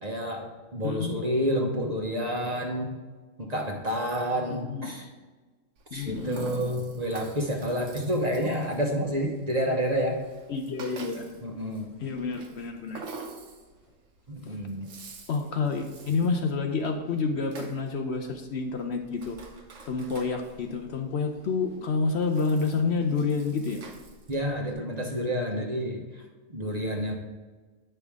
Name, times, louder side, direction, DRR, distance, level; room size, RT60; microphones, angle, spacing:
voice 1, 0.0-2.9 3.4-5.1 5.9-10.2 11.4-11.9 14.3-14.9 24.3-26.2 26.5-27.1, equal, 35° right, 0 dB, 1.0 m, -29 dB
voice 2, 0.8-1.1 4.5-4.9 5.9-6.7 10.5-11.4 12.0-13.0 14.5-14.6 15.3-19.4 19.9-23.8, left 4 dB, 60° left, 4 dB, 0.8 m, -29 dB
Rattle (instrument), 5.8-24.7, right 4 dB, 70° right, 1.2 m, -48 dB
8.9 x 5.6 x 3.5 m, 1.3 s
omnidirectional pair, 1.4 m